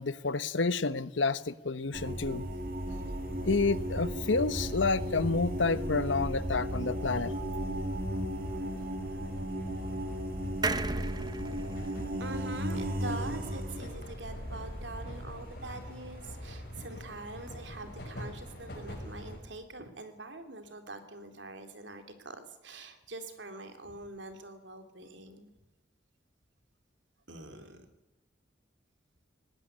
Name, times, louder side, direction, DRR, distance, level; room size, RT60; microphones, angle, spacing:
voice 1, 0.0-2.5 3.4-7.3, left 3 dB, 85° left, 15 dB, 1.0 m, -29 dB
sound 1, 1.9-15.8 17.6-17.7 18.3-18.7 19.0-19.3, equal, 50° right, 2.0 m, -36 dB
sound 2, 2.9-19.4, equal, 55° left, 5.8 m, -46 dB
sound 3, 10.6-14.1 14.5-14.6 14.8-14.9, right 3 dB, 20° right, 0.8 m, -37 dB
voice 2, 12.2-25.5 27.3-27.8, right 2 dB, 75° right, 7 dB, 2.8 m, -44 dB
19.5 x 18.0 x 10.0 m, 1.0 s
head